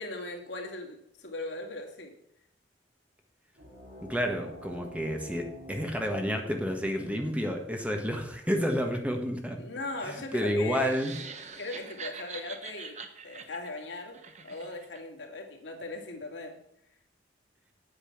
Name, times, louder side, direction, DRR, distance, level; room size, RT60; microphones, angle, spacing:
voice 1, 0.0-2.2 9.6-11.0 11.6-13.0 13.2-16.6, left 2 dB, 75° left, 2 dB, 2.2 m, -39 dB
sound 1, 3.5-8.7, right 1 dB, 65° right, 3.1 m, -50 dB
voice 2, 4.0-9.6 10.0-11.1, equal, 5° right, 3 dB, 1.5 m, -30 dB
sound 2, 10.8-15.0, right 5 dB, 40° right, 1.1 m, -44 dB
8.7 x 8.6 x 5.9 m, 0.76 s
head